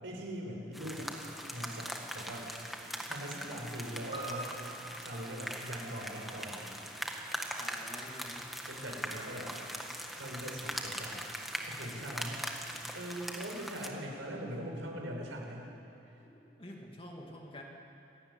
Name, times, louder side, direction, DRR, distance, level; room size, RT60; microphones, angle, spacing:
voice 1, 0.0-1.1 1.5-2.6 3.1-4.6 5.0-6.6 8.6-9.5 10.2-11.2 11.7-15.7 16.1-16.2, equal, 90° right, 0 dB, 5.8 m, -41 dB
sound 1, 0.7-13.9, equal, ahead, 1.7 m, -41 dB
Piano, 4.1-8.6 8.9-9.0, right 2 dB, 25° right, 4.2 m, -48 dB
voice 2, 7.6-8.4 16.2-17.6, left 1 dB, 30° left, 0 dB, 2.6 m, -48 dB
26.5 x 17.0 x 10.0 m, 3.0 s
head